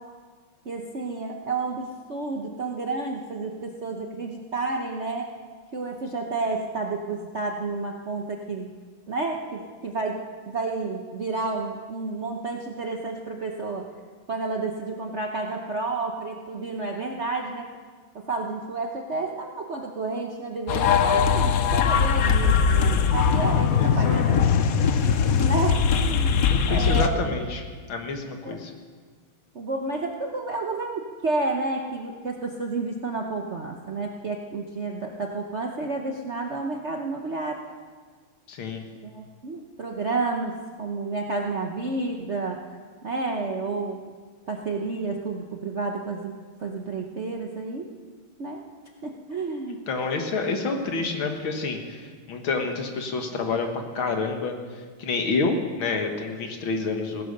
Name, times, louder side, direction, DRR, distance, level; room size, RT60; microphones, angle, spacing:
voice 1, 0.6-5.3 5.7-8.7 9.1-13.9 14.3-17.7 18.1-24.4 25.4-27.2 28.4-28.6 29.5-37.6 39.0-42.6 43.0-44.1 44.5-47.8 48.4-48.6 49.0-49.9, right 3 dB, 50° right, 1 dB, 0.8 m, -30 dB
sound 1, 20.7-27.1, left 6 dB, 90° left, 0.7 m, -21 dB
voice 2, 23.4-24.2 26.5-27.6 27.9-28.7 38.5-38.8 49.9-53.7 54.0-57.2, left 4 dB, 65° left, 4 dB, 2.2 m, -28 dB
17.0 x 10.5 x 6.7 m, 1.5 s
omnidirectional pair, 2.4 m